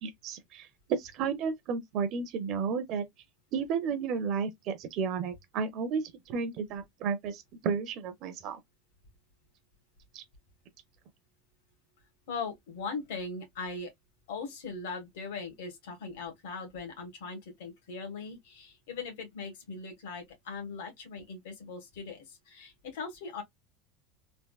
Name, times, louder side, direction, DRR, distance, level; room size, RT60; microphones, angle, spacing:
voice 1, 0.0-3.0 3.5-8.6 10.1-10.2, right 6 dB, 40° right, 0.5 m, -32 dB
voice 2, 12.3-13.9 14.3-23.4, left 4 dB, 90° left, 1.4 m, -40 dB
3.4 x 2.5 x 2.3 m
cardioid pair, 170°, 0 cm